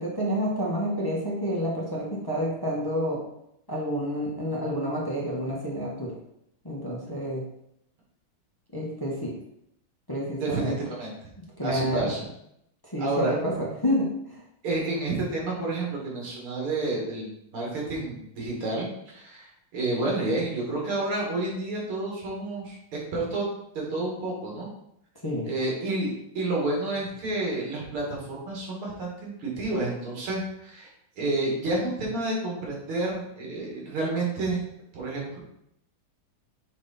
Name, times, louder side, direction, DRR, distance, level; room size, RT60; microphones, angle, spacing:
voice 1, 0.0-3.2 3.7-6.1 6.6-7.5 8.7-9.3 10.1-10.8 11.6-12.1 12.8-14.4 25.2-25.5, equal, 20° left, -4 dB, 0.5 m, -29 dB
voice 2, 10.4-11.1 11.6-12.2 13.0-13.6 14.6-22.8 23.1-23.5 23.7-24.7 25.4-30.9 31.2-34.6 34.9-35.4, right 2 dB, 85° right, -3 dB, 2.6 m, -30 dB
6.1 x 3.8 x 4.0 m, 0.77 s
omnidirectional pair, 2.3 m